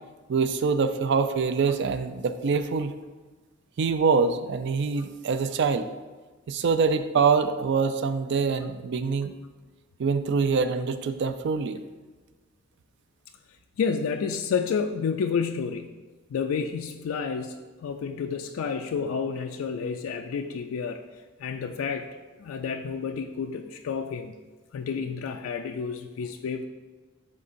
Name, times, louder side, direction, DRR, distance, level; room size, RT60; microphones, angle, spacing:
voice 1, 0.3-2.9 3.8-5.9 6.5-9.3 10.0-11.8, right 5 dB, 60° right, 10 dB, 0.4 m, -24 dB
voice 2, 13.8-15.9 16.3-17.5 17.8-21.0 21.4-22.1 22.4-24.3 24.7-26.7, left 6 dB, 85° left, 5 dB, 0.3 m, -30 dB
11.0 x 3.8 x 2.6 m, 1.3 s
head